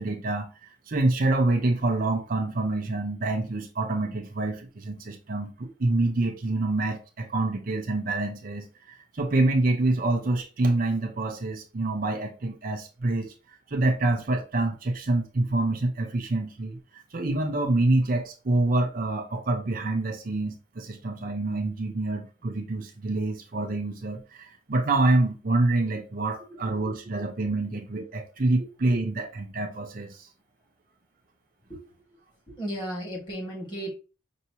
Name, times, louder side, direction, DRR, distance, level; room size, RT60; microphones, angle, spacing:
voice 1, 0.0-30.3, right 2 dB, 45° right, 0.5 m, -27 dB
voice 2, 32.5-33.9, right 1 dB, 25° left, 1.7 m, -35 dB
5.5 x 2.6 x 2.8 m
head